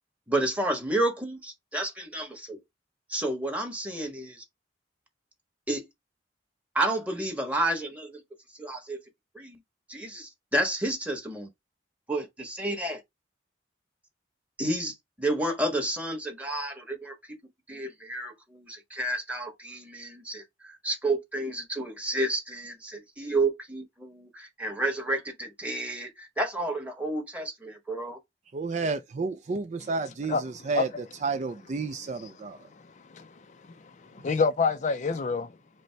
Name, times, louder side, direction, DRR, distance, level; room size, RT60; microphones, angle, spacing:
voice 1, 0.3-2.6 3.1-4.4 5.7-5.9 6.7-8.2 8.6-9.0 9.3-9.6 9.9-11.5 12.1-13.0 14.6-17.1 17.7-28.2, right 1 dB, 10° right, 1.3 m, -30 dB
voice 2, 28.5-30.9 31.2-32.6, right 4 dB, 40° right, 0.4 m, -31 dB
voice 3, 34.1-35.5, left 4 dB, 40° left, 0.4 m, -27 dB
5.1 x 2.1 x 4.5 m
head